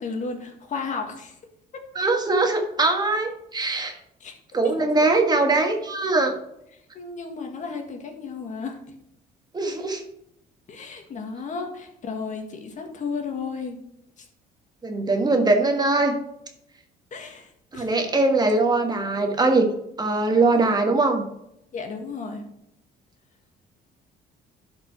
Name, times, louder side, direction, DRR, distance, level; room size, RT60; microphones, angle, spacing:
voice 1, 0.0-1.3 4.2-4.3 4.6-4.7 6.7-8.8 10.7-13.8 14.2-14.3 17.1-17.9 21.7-22.5, left 4 dB, 45° left, 4 dB, 1.9 m, -33 dB
voice 2, 1.9-4.0 4.5-6.3 9.5-10.0 14.8-16.2 17.7-19.7 20.0-21.2, right 2 dB, 25° right, 4 dB, 1.5 m, -21 dB
11.5 x 5.2 x 4.7 m, 0.78 s
cardioid pair, 110°, 17 cm